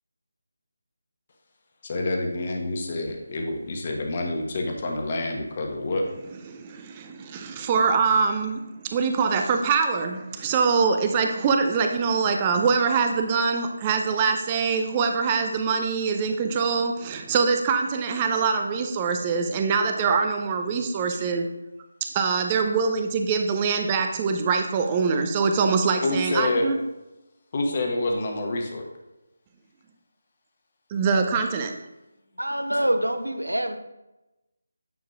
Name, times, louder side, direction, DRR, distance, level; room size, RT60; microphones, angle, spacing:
voice 1, 1.8-6.0 21.1-21.2 26.0-26.7 27.5-28.8, left 2 dB, 30° left, 1.1 m, -27 dB
voice 2, 6.5-21.5 22.0-26.8 30.9-31.8, right 5 dB, 20° right, 0.5 m, -24 dB
voice 3, 32.4-33.8, right 1 dB, 80° right, 0.7 m, -25 dB
9.4 x 6.4 x 2.4 m
figure-of-eight pair, 155°, 0 cm